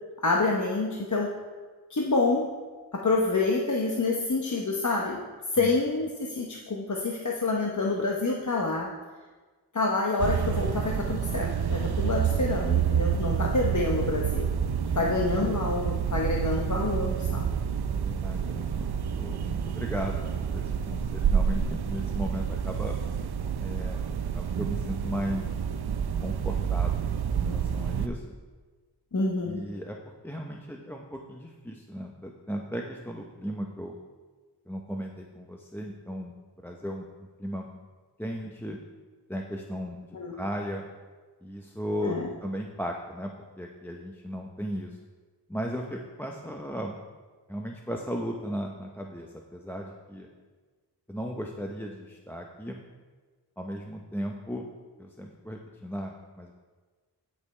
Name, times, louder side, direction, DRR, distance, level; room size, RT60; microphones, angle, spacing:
voice 1, 0.2-1.3 1.9-2.5 2.9-5.2 5.5-8.9 9.7-14.5 14.9-17.5 29.1-29.6 40.1-40.3 42.0-42.3, left 3 dB, 45° left, -1 dB, 0.9 m, -27 dB
sound 1, 10.2-28.1, right 7 dB, 65° right, 0.6 m, -28 dB
voice 2, 17.9-23.0 23.6-24.1 24.3-25.5 26.2-27.0 27.3-28.4 29.4-30.0 30.2-34.0 34.7-37.1 37.4-37.7 38.2-38.8 39.3-40.0 40.3-40.8 41.4-45.0 45.5-47.0 47.5-50.3 51.1-52.8 53.6-54.7 55.0-56.5, equal, 5° left, 1 dB, 0.7 m, -36 dB
15.0 x 5.3 x 3.3 m, 1.4 s
wide cardioid pair, 50°, 41 cm